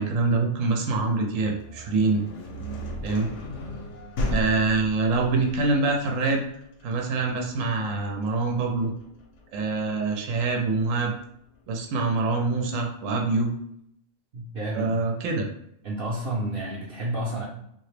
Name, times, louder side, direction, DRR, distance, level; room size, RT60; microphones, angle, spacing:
voice 1, 0.0-2.2 3.0-3.3 4.3-6.4 6.8-8.9 9.5-11.1 11.7-13.5 14.7-15.5, right 3 dB, 90° right, 2 dB, 1.0 m, -25 dB
sound 1, 1.3-11.1, left 1 dB, 70° left, 0.9 m, -36 dB
voice 2, 14.3-15.1 15.8-17.5, right 1 dB, 55° right, -4 dB, 0.7 m, -30 dB
2.8 x 2.4 x 3.2 m, 0.73 s
omnidirectional pair, 1.3 m